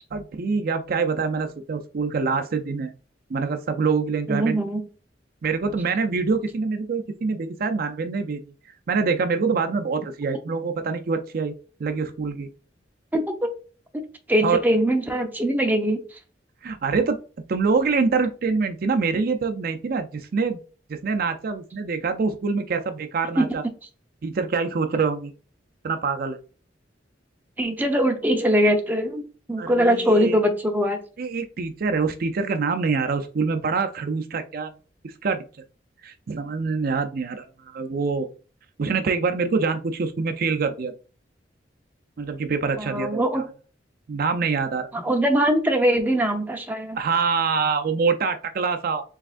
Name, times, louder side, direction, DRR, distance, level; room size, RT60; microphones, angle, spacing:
voice 1, 0.1-2.9 3.3-4.6 5.4-8.4 8.9-11.5 11.8-12.5 14.4-14.6 16.6-17.2 17.5-20.6 20.9-23.6 24.2-25.3 25.8-26.4 29.6-30.4 31.2-34.7 35.0-35.4 36.0-38.3 38.8-40.9 42.2-43.5 44.1-44.9 47.0-49.0, right 4 dB, 50° right, 7 dB, 0.4 m, -25 dB
voice 2, 4.3-4.8 13.1-13.5 13.9-14.0 14.3-16.0 23.4-23.5 27.6-29.2 29.5-31.0 42.8-43.4 44.9-47.0, equal, 10° right, 3 dB, 0.7 m, -22 dB
4.7 x 3.4 x 2.5 m, 0.37 s
head